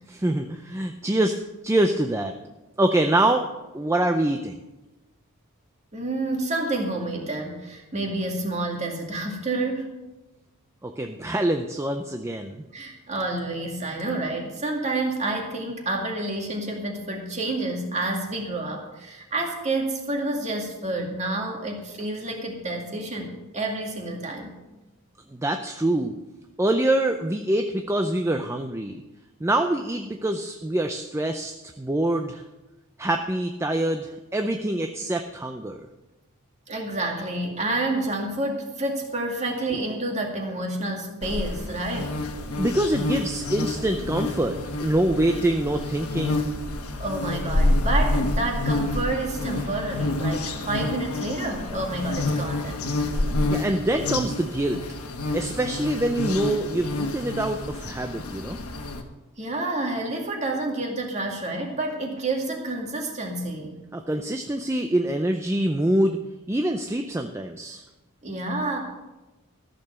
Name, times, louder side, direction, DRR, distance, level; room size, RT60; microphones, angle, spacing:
voice 1, 0.1-1.4 1.6-2.3 2.8-3.5 3.7-4.6 10.8-12.6 25.4-26.1 26.6-29.0 29.4-32.4 33.0-35.9 42.6-46.4 53.1-53.2 53.5-54.8 55.3-58.6 63.9-66.2 66.5-67.8, right 1 dB, 10° right, 5 dB, 0.5 m, -25 dB
voice 2, 5.9-9.9 12.7-24.5 36.7-42.2 47.0-52.9 59.4-63.8 68.2-68.8, right 2 dB, 30° right, 1 dB, 2.0 m, -29 dB
sound 1, 41.2-59.0, left 2 dB, 85° left, 1.4 m, -28 dB
14.0 x 6.8 x 6.7 m, 1.1 s
head